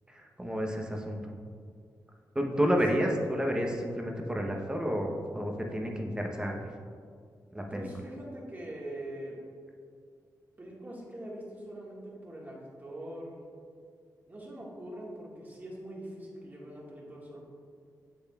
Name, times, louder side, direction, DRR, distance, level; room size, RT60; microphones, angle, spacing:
voice 1, 0.1-1.3 2.3-6.5 7.5-7.9, equal, 10° right, 1 dB, 0.8 m, -30 dB
voice 2, 7.6-9.4 10.6-13.4 14.3-17.5, right 1 dB, 25° right, -4 dB, 1.6 m, -43 dB
7.9 x 6.8 x 2.3 m, 2.2 s
cardioid pair, 90°, 7 cm